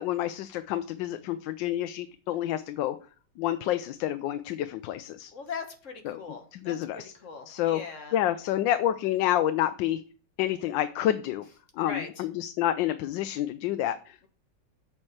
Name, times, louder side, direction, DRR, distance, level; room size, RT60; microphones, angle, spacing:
voice 1, 0.0-3.0 3.4-5.3 6.0-6.2 6.5-7.1 7.5-7.8 8.1-10.0 10.4-11.5 11.8-14.3, left 12 dB, 90° left, 11 dB, 1.3 m, -28 dB
voice 2, 5.3-6.8 7.2-8.2 11.8-12.2, left 5 dB, 45° left, 5 dB, 1.5 m, -39 dB
7.4 x 4.4 x 6.2 m, 0.39 s
omnidirectional pair, 2.0 m